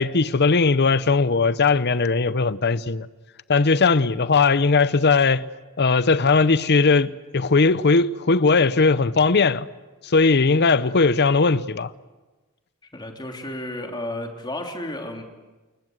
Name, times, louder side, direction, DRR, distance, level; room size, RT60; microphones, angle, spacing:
voice 1, 0.0-3.1 3.5-5.4 5.8-9.7 10.0-11.9, left 4 dB, 50° left, 0.8 m, -19 dB
voice 2, 12.9-15.2, left 1 dB, 20° left, 3.3 m, -32 dB
29.5 x 21.5 x 8.0 m
head